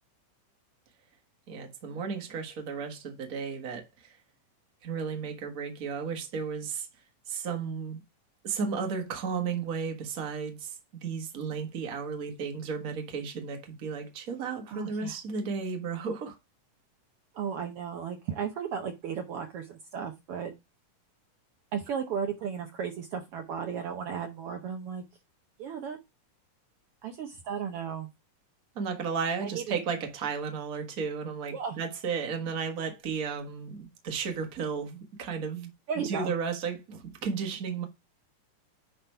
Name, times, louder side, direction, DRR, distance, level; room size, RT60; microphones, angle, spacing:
voice 1, 1.5-4.2 4.8-6.9 7.3-8.0 8.4-10.8 11.0-16.4 28.7-35.7 36.0-37.8, right 5 dB, 50° right, 1.0 m, -34 dB
voice 2, 14.7-15.2 17.3-20.5 21.7-25.0 25.6-26.0 27.0-28.1 29.4-29.8 31.5-31.8 35.9-36.3, right 7 dB, 85° right, 1.2 m, -35 dB
9.8 x 3.5 x 4.5 m
omnidirectional pair, 3.8 m